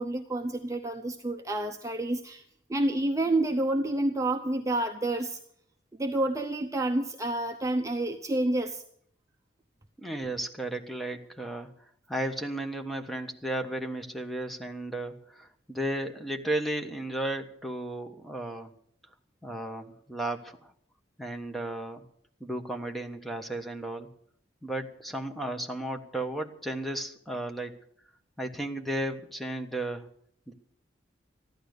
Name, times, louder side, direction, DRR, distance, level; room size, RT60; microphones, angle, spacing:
voice 1, 0.0-2.4 2.7-5.4 6.0-8.8, right 1 dB, 20° right, 4 dB, 0.8 m, -29 dB
voice 2, 10.0-11.7 12.1-18.7 19.4-20.7 21.2-22.0 22.4-24.1 24.6-27.7 28.4-30.1 30.5-30.6, right 1 dB, ahead, 3 dB, 1.3 m, -34 dB
15.0 x 11.5 x 6.6 m, 0.65 s
head